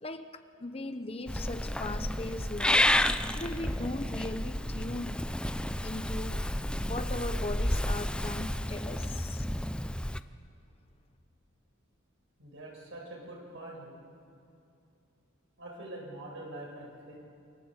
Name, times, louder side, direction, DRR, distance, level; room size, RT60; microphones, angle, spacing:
voice 1, 0.0-2.9 3.3-5.2 5.8-6.4 6.8-9.5, left 2 dB, 30° left, 9 dB, 1.0 m, -38 dB
Purr / Meow, 1.3-10.2, left 1 dB, 5° left, 0.6 m, -31 dB
voice 2, 12.4-14.1 15.6-17.2, right 1 dB, 60° right, -1 dB, 7.8 m, -44 dB
28.5 x 26.0 x 8.2 m, 2.6 s
head